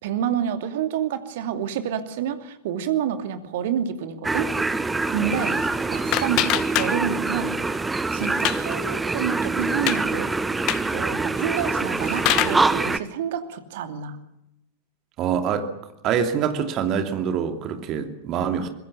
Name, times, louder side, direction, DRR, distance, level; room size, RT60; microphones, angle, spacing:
voice 1, 0.0-4.5 5.1-5.6 5.9-7.6 8.1-10.3 10.9-14.2, right 8 dB, 55° right, 8 dB, 2.7 m, -28 dB
sound 1, 4.2-13.0, right 3 dB, 10° right, 1.2 m, -25 dB
sound 2, 5.3-7.4 7.7-8.7 9.1-9.2 9.6-10.0 10.5-10.9 11.7-12.7, left 16 dB, 40° left, 1.3 m, -26 dB
voice 2, 15.2-15.7 16.0-18.7, right 7 dB, 35° right, 7 dB, 2.7 m, -25 dB
25.0 x 21.5 x 7.0 m, 0.85 s
figure-of-eight pair, 90°, 0 cm